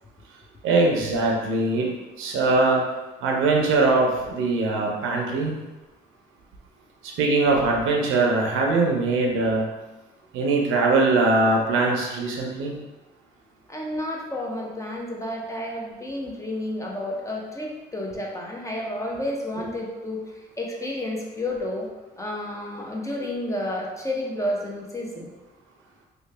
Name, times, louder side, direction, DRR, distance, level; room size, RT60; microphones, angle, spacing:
voice 1, 0.6-1.9 2.2-2.8 3.2-5.6 7.0-9.7 10.3-12.8, right 3 dB, 85° right, 0 dB, 0.7 m, -21 dB
voice 2, 13.7-21.9 22.2-25.3, left 1 dB, 15° left, -2 dB, 0.7 m, -31 dB
3.0 x 2.3 x 3.3 m, 1.1 s
supercardioid pair, 75°, 20 cm